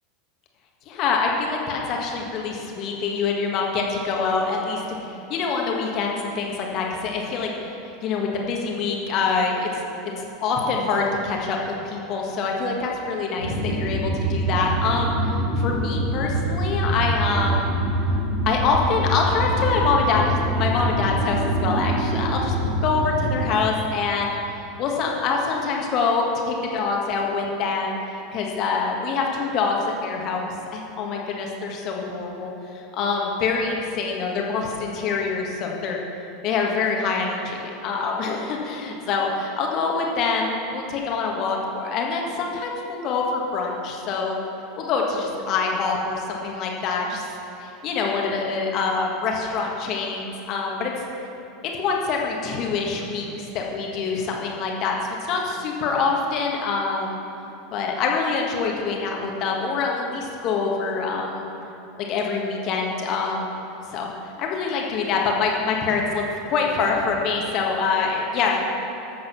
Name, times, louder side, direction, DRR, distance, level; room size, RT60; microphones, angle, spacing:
voice 1, 0.9-5.0 5.3-7.5 8.0-9.7 10.2-11.6 11.8-17.7 18.4-22.5 22.8-24.3 24.8-28.0 28.3-36.0 36.4-44.3 44.8-47.3 47.6-50.9 51.8-57.2 57.7-61.4 62.0-63.5 63.9-64.1 64.4-68.6, left 4 dB, 45° left, 0 dB, 1.6 m, -25 dB
sound 1, 13.4-23.5, right 1 dB, 75° left, 2.9 m, -25 dB
13.5 x 7.3 x 5.8 m, 2.8 s
figure-of-eight pair, 80°, 0 cm